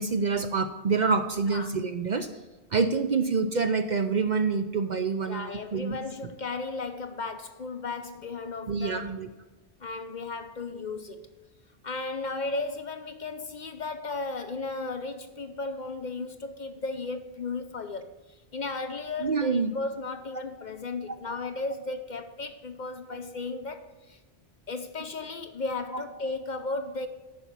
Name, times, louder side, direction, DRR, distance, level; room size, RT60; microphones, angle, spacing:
voice 1, 0.0-2.4 2.7-6.0 8.7-9.3 16.2-16.3 19.2-19.7 21.1-21.2 23.1-23.2 25.9-26.0, right 4 dB, 50° right, 0.6 m, -27 dB
voice 2, 5.3-9.1 9.8-11.3 11.8-24.2 24.7-27.1, left 3 dB, 50° left, 0.7 m, -35 dB
9.8 x 5.8 x 7.1 m
omnidirectional pair, 1.1 m